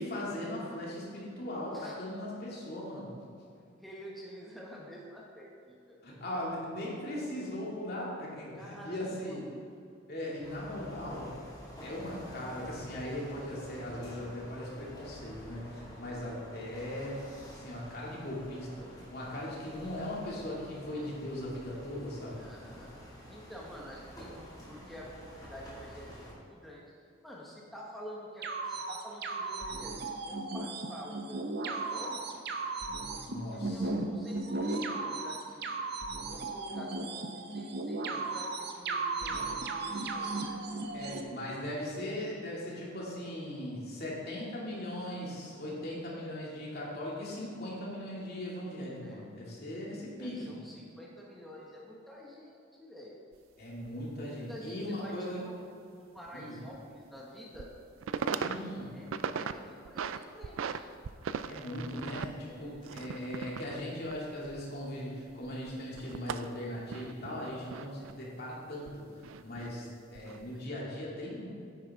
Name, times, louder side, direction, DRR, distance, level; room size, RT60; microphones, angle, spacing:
voice 1, 0.0-3.1 6.0-9.4 10.1-11.4 11.8-17.2 17.5-22.4 33.3-33.9 40.9-50.4 53.6-55.4 56.3-56.6 58.3-58.9 61.5-69.0 69.4-69.9 70.1-71.5, left 1 dB, 55° left, -5 dB, 2.6 m, -39 dB
voice 2, 1.7-2.1 3.8-6.0 8.5-9.7 20.9-21.4 22.4-22.9 23.3-26.9 27.2-32.6 33.5-35.7 36.2-40.6 49.0-49.3 50.2-53.2 54.5-55.6 55.9-57.7 58.2-58.6 58.9-60.8 62.5-62.9 67.9-68.2 70.5-70.6, equal, ahead, -4 dB, 1.2 m, -49 dB
sound 1, 10.4-26.3, equal, 20° left, 2.3 m, -49 dB
sound 2, 28.4-41.2, right 3 dB, 55° right, 0.8 m, -36 dB
sound 3, 53.3-53.4 53.9-54.0 56.2-56.3 56.7-56.8 57.4-57.8 58.0-58.6 58.9-59.5 59.9-60.8 61.0-65.0 65.3-68.1 68.9-69.7 70.2-70.5, right 6 dB, 90° right, 0.4 m, -38 dB
10.0 x 8.9 x 3.7 m, 2.5 s
head